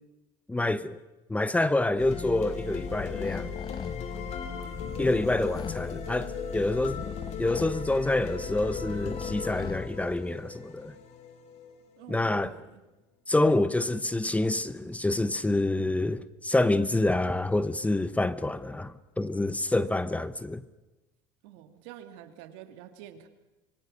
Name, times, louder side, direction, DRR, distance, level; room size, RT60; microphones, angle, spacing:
voice 1, 0.5-1.0 1.3-3.5 5.0-7.0 7.4-10.9 12.1-12.5 13.3-20.6, left 2 dB, 10° left, 0.9 m, -27 dB
sound 1, 2.0-12.1, left 6 dB, 50° left, 3.4 m, -37 dB
sound 2, 2.7-10.4, left 7 dB, 30° left, 0.9 m, -41 dB
voice 2, 4.1-4.4 12.0-12.8 21.4-23.3, right 10 dB, 80° right, 2.4 m, -48 dB
26.0 x 23.5 x 6.4 m
supercardioid pair, 105°, 14 cm